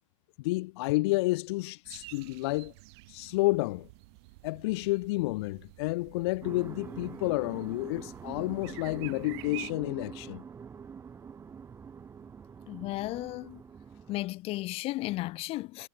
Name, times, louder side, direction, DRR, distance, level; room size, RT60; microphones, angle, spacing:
voice 1, 0.4-2.7 3.1-3.9 4.4-10.4, left 21 dB, 50° left, 0.5 m, -30 dB
sound 1, 1.8-9.7, right 26 dB, 50° right, 1.3 m, -49 dB
sound 2, 6.4-14.3, right 6 dB, 15° right, 1.2 m, -45 dB
voice 2, 12.7-13.6 14.1-15.9, left 18 dB, 35° left, 0.9 m, -34 dB
hypercardioid pair, 120°, 17 cm